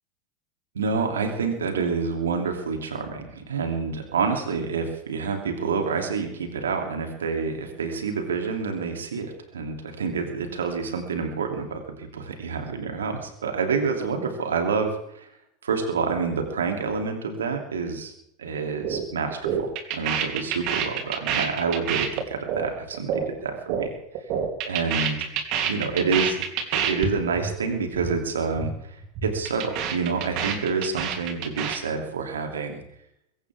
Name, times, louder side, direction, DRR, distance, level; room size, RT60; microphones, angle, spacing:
voice 1, 0.7-15.3 15.6-18.1 18.4-24.0 24.7-25.3 25.7-26.4 26.7-32.8, right 5 dB, 80° right, 4 dB, 3.0 m, -28 dB
sound 1, 18.8-19.0 19.3-23.9 24.1-27.1 27.3-27.5 27.8-28.1 28.4-28.7 29.0-31.8, right 8 dB, 55° right, 3.1 m, -27 dB
22.0 x 17.5 x 3.6 m, 0.75 s
figure-of-eight pair, 80°, 0 cm